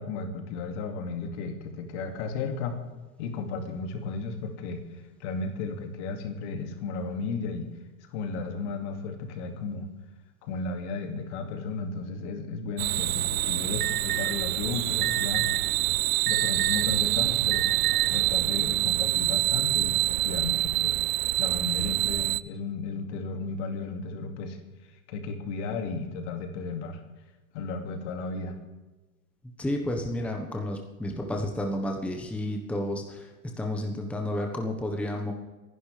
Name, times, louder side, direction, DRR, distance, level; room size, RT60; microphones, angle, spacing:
voice 1, 0.0-2.8 3.2-4.8 5.2-7.7 8.1-9.9 10.4-15.5 16.2-20.9 21.4-24.6 25.1-27.0 27.5-28.5, left 4 dB, 55° left, 4 dB, 2.4 m, -34 dB
sound 1, 12.8-22.4, right 17 dB, 70° right, 0.6 m, -26 dB
Alarm, 13.8-14.3 15.0-15.6 16.3-16.9 17.5-18.1, right 15 dB, 20° right, 0.6 m, -30 dB
voice 2, 29.6-33.3 33.6-35.3, left 1 dB, 5° left, 2 dB, 1.3 m, -31 dB
27.0 x 11.0 x 3.4 m, 1.1 s
hypercardioid pair, 120°, 42 cm